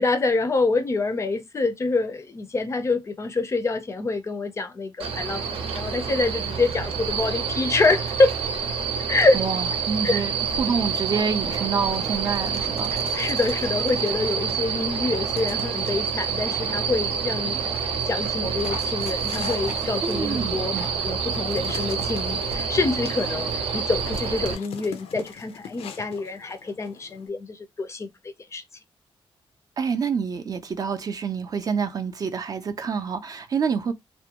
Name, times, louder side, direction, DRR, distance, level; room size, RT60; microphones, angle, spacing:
voice 1, 0.0-8.3 9.1-9.4 10.0-10.2 12.9-17.7 18.1-20.8 21.0-28.1 28.5-28.6, left 3 dB, 30° left, 0.4 m, -26 dB
sound 1, 5.0-24.5, right 6 dB, 85° right, 0.7 m, -27 dB
voice 2, 9.3-10.3 10.6-12.9 20.0-20.9 29.8-33.9, right 6 dB, 40° right, 0.4 m, -27 dB
sound 2, 11.1-15.9 16.3-16.9 17.6-18.1 18.6-18.9 19.6-19.8 20.7-21.0 21.8-24.5, right 1 dB, 20° right, 0.8 m, -43 dB
Dog, 11.8-14.7 15.3-16.3 16.9-27.3, left 7 dB, 85° left, 0.5 m, -43 dB
2.4 x 2.1 x 2.8 m
cardioid pair, 130°, 10 cm